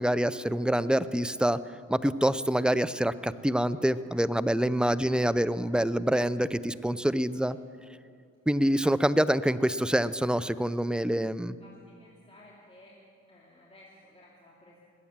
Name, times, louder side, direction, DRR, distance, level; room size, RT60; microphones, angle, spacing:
voice 1, 0.0-1.6 1.9-7.6 8.5-11.6, right 1 dB, 5° right, 15 dB, 0.5 m, -26 dB
voice 2, 11.6-13.0 13.3-14.8, left 1 dB, 20° left, -5 dB, 3.0 m, -55 dB
20.5 x 8.6 x 7.4 m, 2.3 s
supercardioid pair, 60°, 31 cm